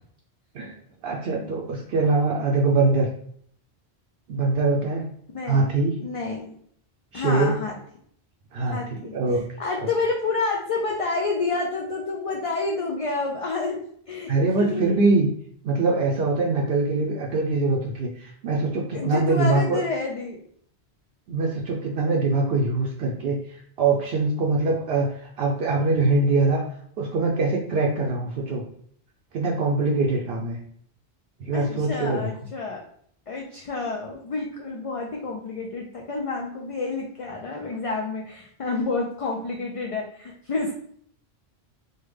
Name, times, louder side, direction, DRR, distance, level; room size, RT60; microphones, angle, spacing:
voice 1, 1.0-3.1 4.3-5.1 5.5-6.0 7.1-7.6 8.5-9.5 14.3-15.3 15.6-19.8 21.3-26.7 27.0-28.6 29.3-30.6 31.4-32.3, right 3 dB, 70° right, -2 dB, 0.8 m, -23 dB
voice 2, 5.3-5.7 6.0-6.5 7.1-7.7 8.7-9.1 9.6-13.8 14.1-14.3 14.6-14.8 18.9-20.4 31.5-32.8 33.3-40.7, left 3 dB, 55° left, 0 dB, 0.4 m, -29 dB
3.4 x 2.2 x 3.2 m, 0.64 s
omnidirectional pair, 1.1 m